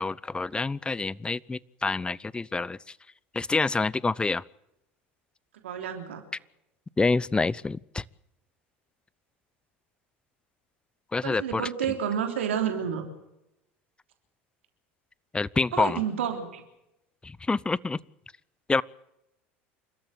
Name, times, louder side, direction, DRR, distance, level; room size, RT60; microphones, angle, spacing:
voice 1, 0.0-2.8 3.3-4.4 7.0-8.0 11.1-11.6 15.3-16.0 17.2-18.0 18.7-18.8, left 3 dB, 15° left, 23 dB, 0.7 m, -27 dB
voice 2, 5.6-6.2 11.2-13.1 15.7-16.6, right 8 dB, 80° right, 5 dB, 3.4 m, -30 dB
29.0 x 13.5 x 7.8 m, 0.87 s
hypercardioid pair, 80°, 6 cm